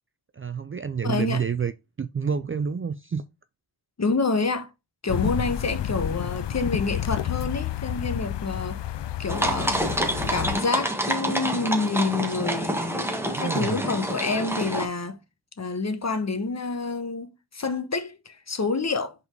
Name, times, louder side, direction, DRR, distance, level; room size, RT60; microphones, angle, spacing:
voice 1, 0.3-1.7 2.0-3.2 13.3-13.9, right 6 dB, 30° right, 0.4 m, -28 dB
voice 2, 1.0-1.4 4.0-4.7 5.0-8.8 9.2-9.9 10.3-15.2 15.6-19.1, left 3 dB, 35° left, 1.1 m, -28 dB
sound 1, 5.1-10.6, left 11 dB, 70° left, 0.6 m, -30 dB
sound 2, 9.3-14.9, right 1 dB, 5° right, 1.5 m, -27 dB
5.4 x 4.1 x 4.6 m
cardioid pair, 70°, 45 cm